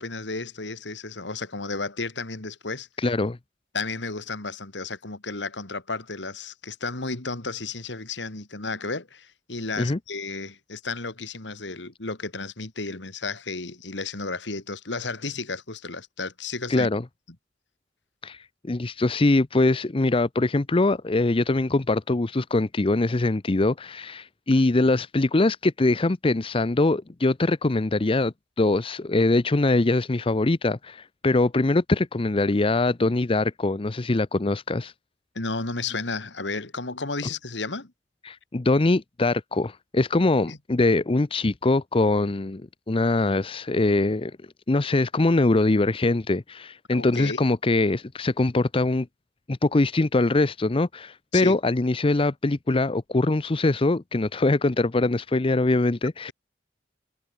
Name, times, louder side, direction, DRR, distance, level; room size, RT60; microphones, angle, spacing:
voice 1, 0.0-2.9 3.7-16.9 35.3-37.9 40.5-40.6 46.9-47.4 51.3-51.6, left 3 dB, 70° left, 2.5 m, -33 dB
voice 2, 3.0-3.4 9.8-10.0 16.7-17.0 18.2-34.9 38.2-42.6 42.9-44.3 44.7-49.1 49.5-56.3, left 2 dB, 30° left, 0.6 m, -23 dB
head